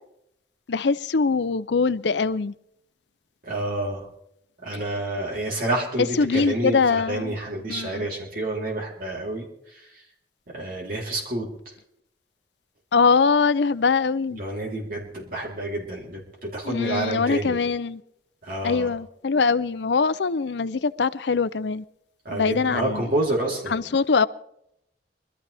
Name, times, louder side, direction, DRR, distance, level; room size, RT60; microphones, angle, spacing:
voice 1, 0.7-2.5 6.2-7.4 7.7-8.1 12.9-14.4 16.7-18.0 18.6-21.8 22.3-23.0 23.7-24.3, left 4 dB, 80° left, 0.6 m, -22 dB
voice 2, 3.4-4.1 4.6-9.4 9.7-9.9 10.5-11.5 14.3-17.6 18.4-18.9 22.3-23.7, right 1 dB, 55° right, 3.5 m, -29 dB
24.0 x 13.5 x 3.4 m
head